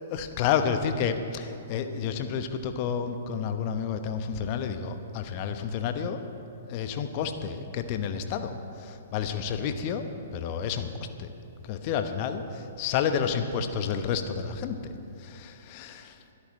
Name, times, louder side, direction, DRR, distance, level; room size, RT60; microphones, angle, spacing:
voice 1, 0.1-6.2 6.6-8.5 8.8-10.0 10.3-10.9 11.2-11.3 11.7-14.9 15.2-16.1, left 7 dB, 40° left, 8 dB, 1.1 m, -30 dB
23.5 x 13.0 x 3.3 m, 2.9 s
figure-of-eight pair, 115°, 0 cm